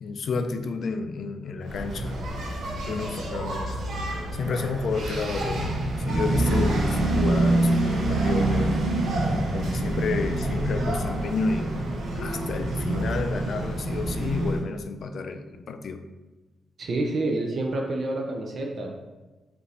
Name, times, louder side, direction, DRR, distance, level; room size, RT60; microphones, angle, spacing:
voice 1, 0.0-2.4 2.9-3.8 4.3-8.8 9.5-11.9 12.2-16.0, left 4 dB, 55° left, 8 dB, 0.3 m, -31 dB
Engine, 1.6-14.6, right 1 dB, 75° right, 0.9 m, -26 dB
voice 2, 16.8-19.0, right 2 dB, 45° right, 1 dB, 0.5 m, -28 dB
5.1 x 2.6 x 3.2 m, 1.2 s
wide cardioid pair, 150°, 0 cm